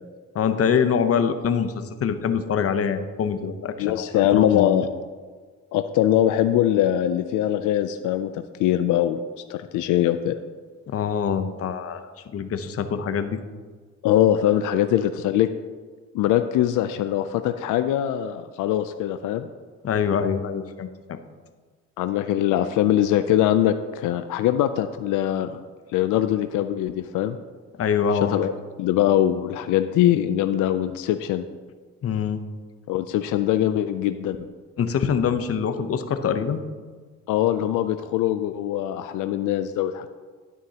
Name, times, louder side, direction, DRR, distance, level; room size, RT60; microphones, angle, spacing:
voice 1, 0.3-4.7 10.9-12.0 12.3-13.4 19.8-21.2 27.8-28.3 32.0-32.4 34.8-36.6, left 7 dB, 50° left, 9 dB, 0.8 m, -24 dB
voice 2, 3.8-4.9 5.7-9.2 9.5-10.3 14.0-15.5 16.1-19.5 22.0-25.6 25.9-27.4 28.3-28.5 28.8-31.4 32.9-34.4 37.3-40.1, left 12 dB, 85° left, 9 dB, 0.5 m, -22 dB
11.5 x 9.3 x 2.9 m, 1.5 s
cardioid pair, 90°, 30 cm